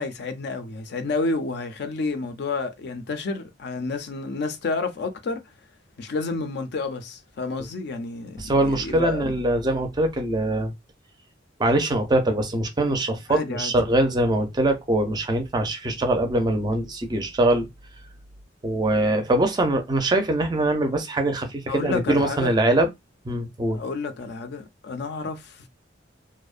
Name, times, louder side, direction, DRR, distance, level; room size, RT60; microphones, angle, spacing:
voice 1, 0.0-5.4 6.0-9.3 13.3-13.7 21.7-22.6 23.7-25.7, left 3 dB, 60° left, 0.4 m, -30 dB
voice 2, 8.4-10.7 11.6-17.7 18.6-22.9 23.2-23.8, right 1 dB, 20° right, 0.4 m, -23 dB
2.5 x 2.0 x 2.4 m
head